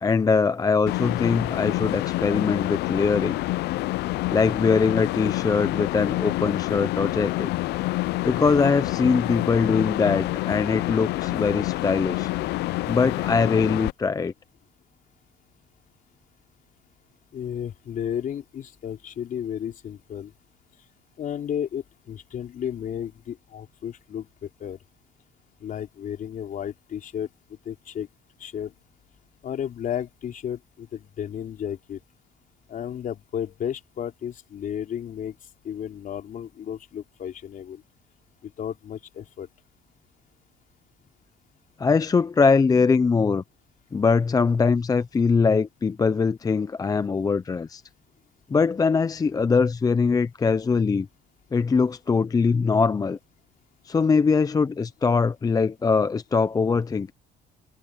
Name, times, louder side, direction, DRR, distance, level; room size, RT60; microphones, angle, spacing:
voice 1, 0.0-3.4 4.3-7.5 8.2-12.3 12.8-14.3 41.8-43.4 43.9-47.8 48.5-51.1 51.5-53.2 53.8-57.1, left 5 dB, 20° left, 0.5 m, -22 dB
sound 1, 0.9-13.9, left 18 dB, 80° left, 0.5 m, -27 dB
voice 2, 17.3-20.3 21.2-24.8 25.6-27.3 27.6-28.1 28.4-28.7 29.4-32.0 32.7-35.3 35.6-37.8 38.4-39.5, left 9 dB, 55° left, 4.3 m, -33 dB
cardioid pair, 110°, 17 cm